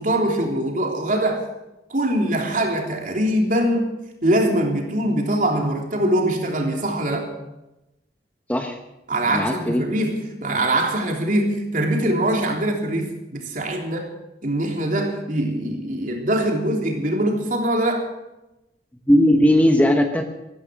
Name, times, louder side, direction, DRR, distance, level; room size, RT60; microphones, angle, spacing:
voice 1, 0.0-1.4 1.9-3.9 4.2-7.3 9.1-14.1 14.4-18.1, right 1 dB, 50° right, 1 dB, 3.3 m, -22 dB
voice 2, 9.3-9.8 19.1-20.3, equal, 10° left, 4 dB, 1.1 m, -17 dB
14.5 x 14.0 x 6.3 m, 0.93 s
head